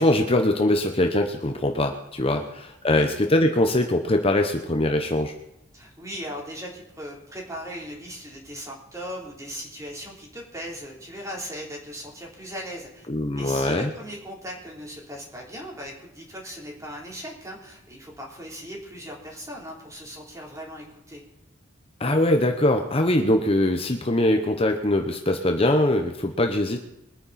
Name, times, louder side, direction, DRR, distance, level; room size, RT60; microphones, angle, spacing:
voice 1, 0.0-5.3 13.1-13.9 22.0-26.8, left 1 dB, 30° left, 5 dB, 0.9 m, -22 dB
voice 2, 5.7-13.1 13.4-21.2, equal, 15° right, -2 dB, 3.6 m, -38 dB
22.5 x 9.6 x 4.2 m, 0.87 s
head